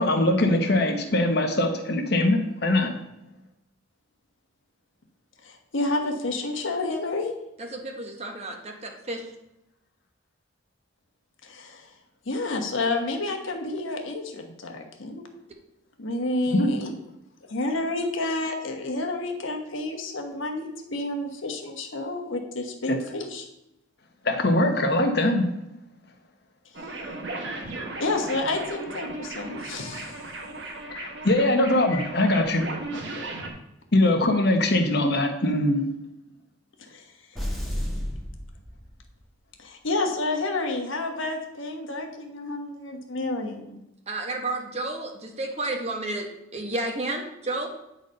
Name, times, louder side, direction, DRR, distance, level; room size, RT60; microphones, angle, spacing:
voice 1, 0.0-2.9 16.5-16.7 22.9-23.0 24.2-25.5 30.9-32.7 33.9-35.8, left 1 dB, 55° left, 5 dB, 1.0 m, -22 dB
voice 2, 5.4-7.3 11.4-11.9 12.3-15.3 16.0-16.9 17.5-23.5 28.0-30.2 36.8-37.0 39.6-43.8, left 2 dB, 80° left, 3 dB, 1.2 m, -30 dB
voice 3, 7.6-9.3 44.1-47.7, right 2 dB, 30° right, 3 dB, 1.0 m, -31 dB
sound 1, 26.7-33.5, right 2 dB, 65° right, 1.2 m, -36 dB
sound 2, 37.3-39.2, equal, ahead, 1.3 m, -32 dB
9.1 x 4.1 x 5.2 m, 0.85 s
head